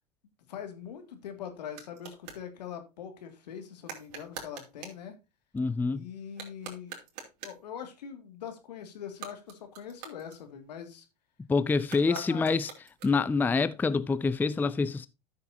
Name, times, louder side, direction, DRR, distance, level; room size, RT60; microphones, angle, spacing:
voice 1, 0.5-5.2 5.9-7.0 7.4-11.1 12.0-12.5, left 8 dB, 80° left, 2.2 m, -42 dB
sound 1, 0.7-2.5 3.8-5.1 6.3-7.7 9.0-10.9 11.8-13.4, right 7 dB, 65° right, 3.2 m, -46 dB
voice 2, 5.5-6.1 11.5-12.7 13.0-15.1, left 4 dB, 10° left, 0.4 m, -26 dB
13.0 x 6.7 x 2.7 m
hypercardioid pair, 85°, 21 cm